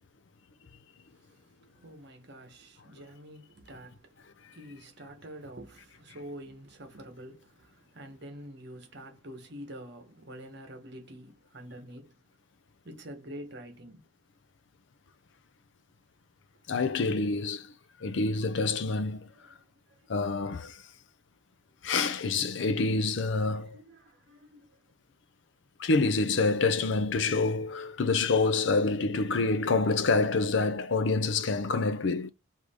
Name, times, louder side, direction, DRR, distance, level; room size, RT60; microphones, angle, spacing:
voice 1, 1.0-12.2 12.8-14.1 19.1-20.2 23.5-24.8, equal, 55° right, 1.2 m, -47 dB
voice 2, 16.7-17.7 18.0-19.3 20.1-20.8 21.8-23.8 25.8-32.3, left 3 dB, 60° left, 0.5 m, -27 dB
4.9 x 2.7 x 3.6 m
head